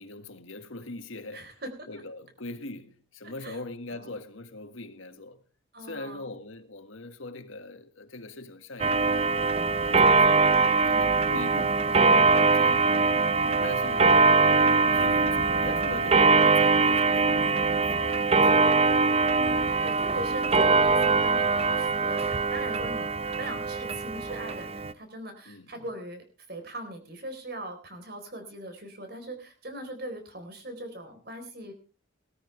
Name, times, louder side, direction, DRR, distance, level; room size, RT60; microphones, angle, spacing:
voice 1, 0.0-1.6 1.9-5.4 5.8-9.4 9.8-10.5 10.8-13.2 13.6-14.2 14.6-18.9 25.4-25.8, left 2 dB, 90° left, 1.7 m, -42 dB
voice 2, 1.3-1.9 3.2-3.6 3.9-4.1 5.7-6.3 10.9-11.1 16.5-16.6 19.3-31.7, right 1 dB, 50° right, 4.0 m, -40 dB
Clock, 8.8-24.9, right 4 dB, 30° right, 0.6 m, -22 dB
18.5 x 13.5 x 3.3 m
head